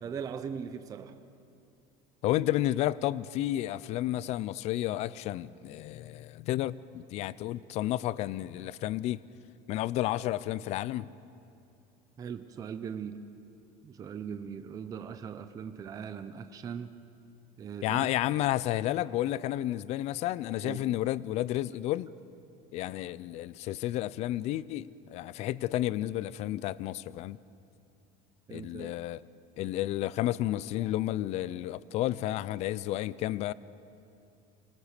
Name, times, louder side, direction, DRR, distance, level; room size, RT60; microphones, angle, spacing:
voice 1, 0.0-1.2 12.2-13.2 13.8-17.0 17.6-18.1 20.6-20.8 28.5-28.9, right 7 dB, 20° right, 9 dB, 0.6 m, -39 dB
voice 2, 2.2-9.2 9.7-11.1 17.8-22.1 22.7-27.4 28.5-29.2 29.6-33.5, left 14 dB, 35° left, 19 dB, 0.4 m, -31 dB
25.5 x 19.5 x 6.6 m, 2.7 s
cardioid pair, 180°, 18 cm